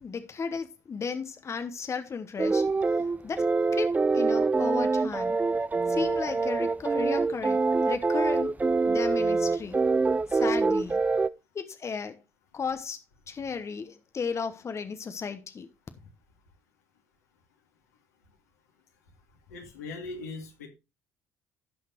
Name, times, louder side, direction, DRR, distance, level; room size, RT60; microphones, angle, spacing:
voice 1, 0.0-5.4 5.9-8.5 8.8-9.8 10.3-11.0 11.5-12.2 12.5-13.0 13.3-15.7, left 5 dB, 35° left, 1.0 m, -35 dB
sound 1, 2.4-11.3, right 3 dB, 20° right, 0.5 m, -25 dB
voice 2, 19.5-20.7, left 3 dB, 85° left, 2.3 m, -39 dB
17.0 x 5.7 x 3.0 m
hypercardioid pair, 55°, 8 cm